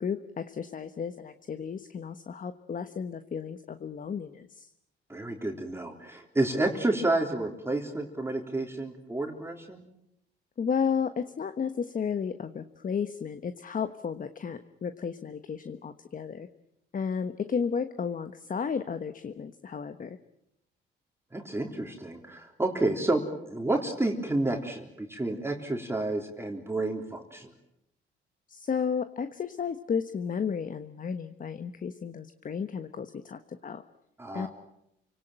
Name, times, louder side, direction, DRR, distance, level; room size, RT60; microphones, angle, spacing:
voice 1, 0.0-4.7 10.6-16.5 16.9-20.2 28.5-33.8 34.3-34.5, left 6 dB, 40° left, 10 dB, 1.3 m, -33 dB
voice 2, 5.1-9.8 21.3-27.5 34.2-34.5, right 2 dB, 10° right, 2 dB, 3.5 m, -30 dB
29.5 x 18.5 x 9.0 m, 0.81 s
cardioid pair, 90°, 20 cm